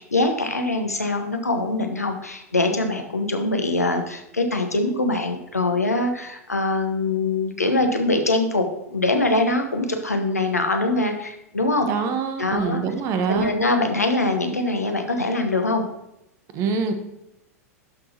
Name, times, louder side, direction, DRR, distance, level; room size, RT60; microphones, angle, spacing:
voice 1, 0.0-11.9 12.4-12.8 13.3-15.9, left 2 dB, 85° left, 5 dB, 1.1 m, -23 dB
voice 2, 11.8-13.5 16.5-16.9, right 5 dB, 40° right, 7 dB, 1.2 m, -24 dB
12.0 x 6.3 x 3.0 m, 0.86 s
figure-of-eight pair, 95°, 8 cm